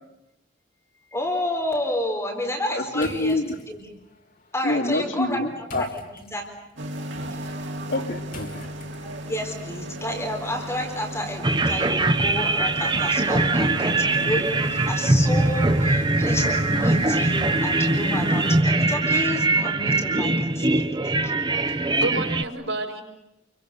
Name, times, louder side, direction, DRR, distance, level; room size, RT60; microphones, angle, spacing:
voice 1, 1.1-3.4 3.7-3.9 4.5-5.4 5.8-6.5 7.3-7.4 9.3-20.7 21.0-21.3, left 1 dB, 15° left, 1 dB, 4.1 m, -30 dB
voice 2, 2.7-3.6 4.6-5.9 7.9-8.7, left 2 dB, 75° left, 0 dB, 3.2 m, -26 dB
sound 1, 3.0-9.4, left 2 dB, 50° left, 2.9 m, -46 dB
sound 2, 6.8-18.6, right 1 dB, 70° right, 3.5 m, -35 dB
sound 3, 11.4-22.4, right 2 dB, 25° right, 0.9 m, -22 dB
voice 3, 21.5-23.0, right 2 dB, 90° right, 2 dB, 5.2 m, -30 dB
29.5 x 23.5 x 6.9 m, 0.91 s
head